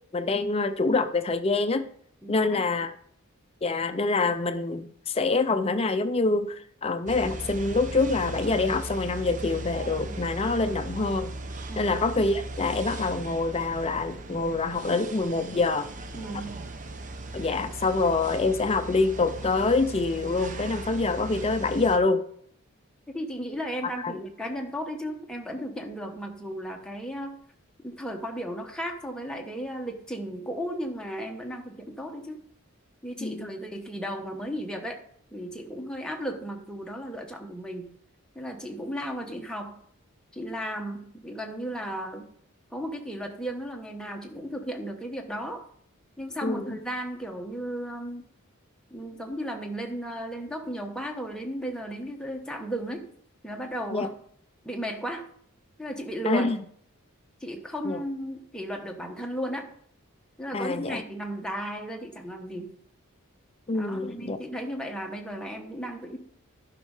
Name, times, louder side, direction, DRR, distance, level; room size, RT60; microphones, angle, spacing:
voice 1, 0.1-1.9 2.3-2.9 3.6-11.3 11.8-15.9 17.3-22.2 24.0-24.1 33.2-33.5 46.4-46.8 53.9-54.1 56.3-56.6 57.8-58.0 60.5-61.0 63.7-64.4, left 3 dB, 25° left, 10 dB, 0.5 m, -26 dB
voice 2, 2.2-2.6 10.0-10.2 11.7-12.0 16.1-16.7 23.1-27.4 27.8-32.4 33.0-35.0 35.3-37.9 38.3-39.8 40.3-42.3 42.7-45.6 46.2-48.3 48.9-53.1 53.4-54.1 54.6-55.2 55.8-56.5 57.4-59.7 60.4-62.7 63.7-66.2, equal, 5° left, 1 dB, 1.0 m, -35 dB
sound 1, 7.1-22.0, right 2 dB, 35° right, 0.7 m, -38 dB
11.5 x 5.3 x 4.8 m, 0.65 s
head